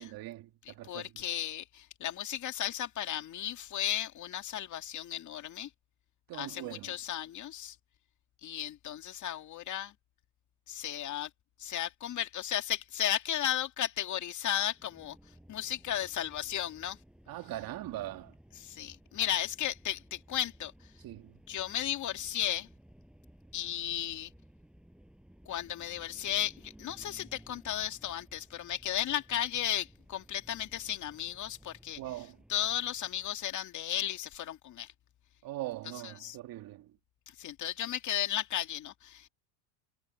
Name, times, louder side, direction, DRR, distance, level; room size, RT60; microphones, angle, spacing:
voice 1, 0.0-1.2 6.3-7.0 17.3-18.3 21.0-21.4 32.0-32.4 35.4-36.9, right 15 dB, 50° right, 2.5 m, -41 dB
voice 2, 0.7-5.7 6.3-7.8 8.4-9.9 10.7-11.3 11.6-15.2 15.5-17.0 18.6-20.7 21.5-22.7 23.5-24.3 25.5-32.0 32.5-34.9 36.0-36.4 37.4-39.3, left 11 dB, 40° left, 2.4 m, -34 dB
sound 1, 14.7-33.4, equal, ahead, 8.0 m, -58 dB
supercardioid pair, 120°, 44 cm